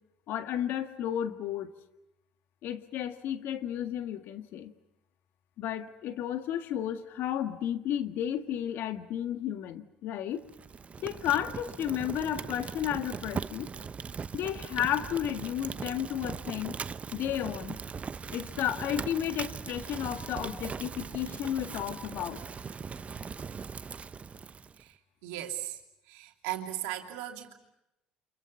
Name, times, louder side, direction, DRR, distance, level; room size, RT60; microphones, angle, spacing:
voice 1, 0.3-1.7 2.6-4.7 5.6-10.4 11.0-13.7 14.3-16.8 17.1-17.8 18.3-22.4, left 10 dB, 65° left, 8 dB, 1.7 m, -33 dB
Fire, 10.4-24.8, right 5 dB, 35° right, 0.8 m, -40 dB
voice 2, 24.7-27.5, right 13 dB, 80° right, 3 dB, 2.9 m, -38 dB
29.5 x 27.0 x 5.7 m, 0.88 s
hypercardioid pair, 65°, 4 cm